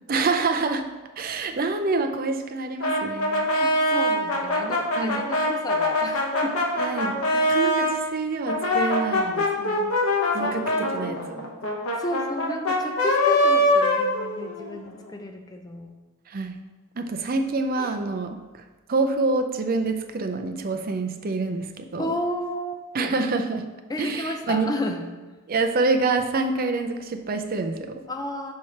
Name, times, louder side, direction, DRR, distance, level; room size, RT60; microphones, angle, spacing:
voice 1, 0.1-3.5 5.0-5.2 6.8-9.9 10.3-11.5 16.3-16.6 17.0-18.4 18.9-22.1 22.9-23.7 24.0-24.7 25.5-28.0, right 3 dB, 40° right, 6 dB, 0.5 m, -27 dB
Brass instrument, 2.8-8.0 8.4-14.8, left 1 dB, 75° left, 1.0 m, -23 dB
voice 2, 3.6-6.6 10.4-16.0 17.8-17.9 22.0-23.1 23.9-25.0 28.1-28.5, left 1 dB, 20° left, 4 dB, 0.5 m, -33 dB
4.9 x 4.2 x 5.7 m, 1.2 s
head